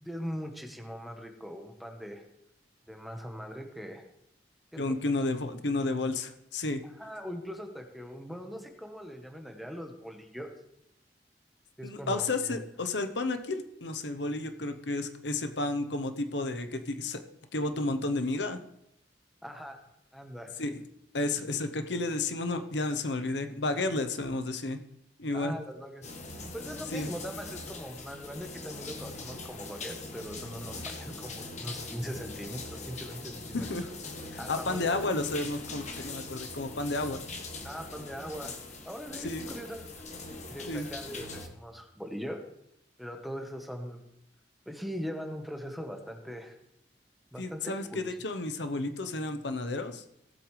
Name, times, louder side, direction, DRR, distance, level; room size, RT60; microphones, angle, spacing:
voice 1, 0.0-2.2 2.9-4.0 4.7-4.8 6.8-10.5 11.8-12.6 19.4-19.8 20.1-20.5 25.3-26.1 26.5-33.7 34.4-35.2 37.6-38.5 38.8-39.8 40.5-42.4 43.0-44.0 44.7-46.5 47.3-48.1, equal, ahead, 3 dB, 1.2 m, -40 dB
voice 2, 4.8-6.8 11.8-17.2 17.5-18.6 20.6-20.8 21.1-24.8 25.2-25.5 26.9-27.1 33.5-33.8 34.3-37.2 39.2-39.4 40.7-40.9 47.4-50.0, left 2 dB, 80° left, 9 dB, 0.9 m, -32 dB
sound 1, 26.0-41.5, left 3 dB, 40° left, 1.4 m, -42 dB
18.0 x 8.1 x 3.3 m, 0.77 s
head